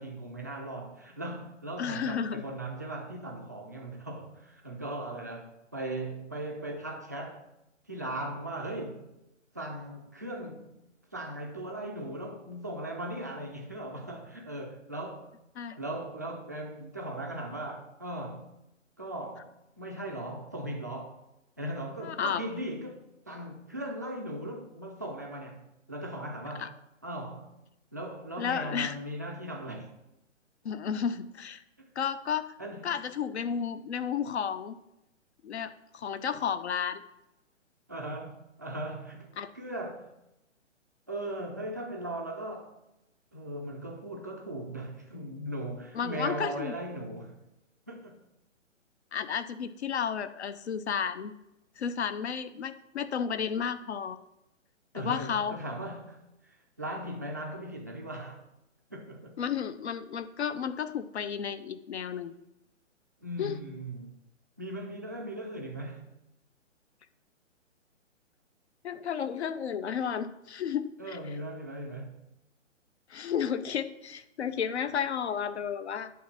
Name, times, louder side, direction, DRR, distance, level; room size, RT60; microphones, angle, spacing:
voice 1, 0.0-7.4 7.9-9.1 9.5-10.8 11.1-15.3 15.8-18.5 19.0-19.5 19.8-21.2 21.6-23.0 23.3-26.7 27.0-27.5 27.9-29.9 32.6-32.9 37.9-40.1 41.1-42.7 43.3-47.4 47.9-48.2 54.9-56.2 56.8-58.4 58.9-59.3 63.2-64.1 64.6-66.1 71.0-72.1, right 1 dB, 15° right, 0.3 m, -38 dB
voice 2, 1.8-2.4 15.6-15.8 22.0-22.4 26.6-26.7 28.4-28.9 30.6-31.6 32.0-32.5 32.8-34.8 35.4-37.0 39.4-39.5 45.9-46.7 49.1-51.3 51.8-54.2 54.9-55.6 59.4-62.3 63.4-63.6 68.8-71.2 73.1-76.1, left 7 dB, 60° left, 0.6 m, -32 dB
8.5 x 3.6 x 5.7 m
figure-of-eight pair, 130°, 38 cm